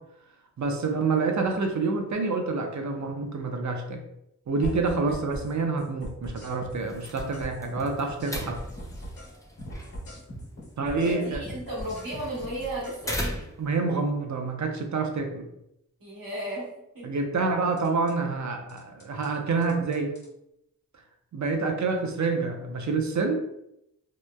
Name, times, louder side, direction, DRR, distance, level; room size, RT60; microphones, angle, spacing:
voice 1, 0.6-4.0 4.5-8.6 10.8-11.4 13.6-15.5 17.0-20.1 21.3-23.3, right 4 dB, 60° right, 3 dB, 0.5 m, -27 dB
sound 1, 4.6-5.5 5.8-9.3 9.6-13.0 17.8-18.1 18.7-19.3 19.6-20.3, equal, 90° left, 1.1 m, -39 dB
sound 2, 6.8-13.7, equal, 10° left, 0.4 m, -40 dB
voice 2, 11.0-13.5 16.0-16.7 16.9-17.1, right 1 dB, 90° right, -5 dB, 1.0 m, -35 dB
2.9 x 2.0 x 2.2 m, 0.81 s
wide cardioid pair, 60°, 33 cm